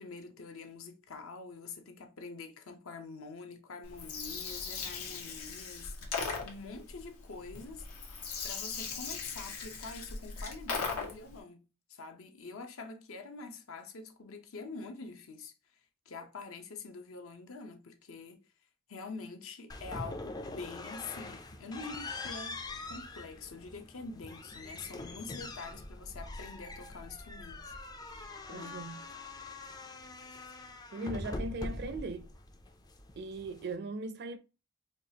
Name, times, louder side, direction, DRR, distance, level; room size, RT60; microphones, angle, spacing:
voice 1, 0.0-7.9 8.4-11.6 11.9-15.5 16.1-18.4 18.9-27.7 28.5-28.8, left 4 dB, 65° left, 0.7 m, -46 dB
Gurgling, 3.8-11.3, left 5 dB, 85° left, 1.1 m, -39 dB
sound 1, 19.7-33.7, left 2 dB, 20° left, 0.4 m, -43 dB
voice 2, 28.5-29.0 30.9-32.3 33.2-34.4, right 2 dB, 50° right, 0.5 m, -39 dB
4.7 x 2.4 x 2.8 m
head